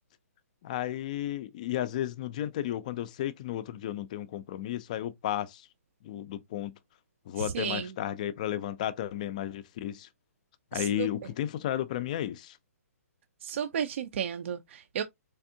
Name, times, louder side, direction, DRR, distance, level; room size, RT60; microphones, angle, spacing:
voice 1, 0.6-5.7 6.0-6.7 7.3-10.1 10.7-12.6, left 12 dB, 30° left, 0.3 m, -33 dB
voice 2, 7.4-7.9 10.7-11.3 13.4-15.0, right 8 dB, 50° right, 0.4 m, -33 dB
3.4 x 3.4 x 2.6 m
hypercardioid pair, 165°, 9 cm